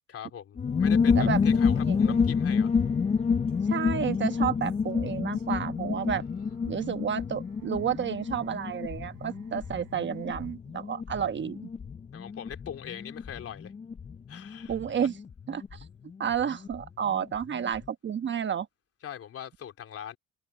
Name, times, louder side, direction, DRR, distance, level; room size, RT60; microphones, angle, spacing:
voice 1, 0.1-2.7 6.4-6.6 11.1-11.2 12.1-13.7 14.3-14.7 19.0-20.2, left 9 dB, 50° left, 3.4 m, -41 dB
sound 1, 0.6-16.9 17.1-17.2 17.4-17.8, left 5 dB, 20° left, 0.5 m, -29 dB
sound 2, 1.8-10.6, right 22 dB, 85° right, 7.0 m, -58 dB
voice 2, 3.6-6.2 6.7-11.7 14.7-15.1 15.5-15.8 16.2-18.7, right 8 dB, 35° right, 1.1 m, -31 dB
cardioid pair, 110°, 31 cm